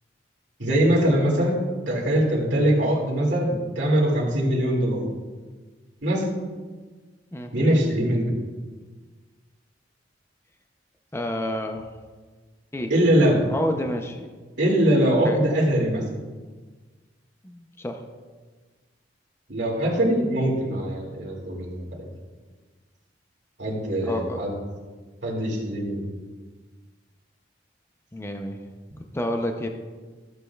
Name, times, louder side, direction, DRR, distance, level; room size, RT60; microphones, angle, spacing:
voice 1, 0.6-5.1 6.0-6.3 7.5-8.3 12.9-13.4 14.6-16.0 19.5-21.8 23.6-24.5 25.2-26.0, right 1 dB, 70° right, -4 dB, 2.2 m, -22 dB
voice 2, 11.1-11.9 12.7-12.9 13.5-14.3 15.2-15.4 17.4-18.0 24.0-24.4 28.1-28.6 29.1-29.7, left 1 dB, 15° left, 4 dB, 0.5 m, -29 dB
14.5 x 7.6 x 2.3 m, 1.4 s
head